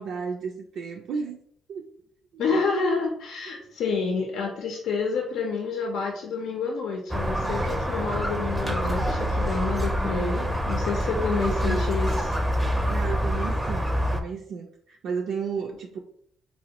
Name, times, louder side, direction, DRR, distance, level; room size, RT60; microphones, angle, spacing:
voice 1, 0.0-1.4 1.7-1.9 2.3-2.4 11.1-12.0 12.9-16.0, right 5 dB, 80° right, -1 dB, 0.4 m, -33 dB
voice 2, 2.4-12.4, left 4 dB, 80° left, 1 dB, 0.5 m, -29 dB
Squeak, 7.1-14.2, equal, 10° right, 0.5 m, -26 dB
4.2 x 2.0 x 2.8 m, 0.63 s
cardioid pair, 90°, 0 cm